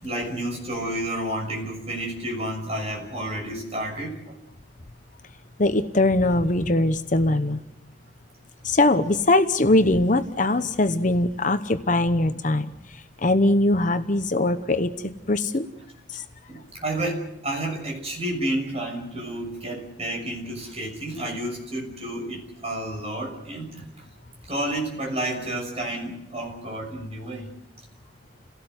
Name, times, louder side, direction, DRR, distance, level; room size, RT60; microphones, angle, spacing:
voice 1, 0.0-4.3 16.5-23.9 24.5-27.5, right 1 dB, 30° right, 0 dB, 6.3 m, -30 dB
voice 2, 5.6-7.6 8.6-15.7 16.1-16.2, left 2 dB, 40° left, 9 dB, 0.9 m, -22 dB
28.5 x 17.5 x 8.0 m, 0.85 s
head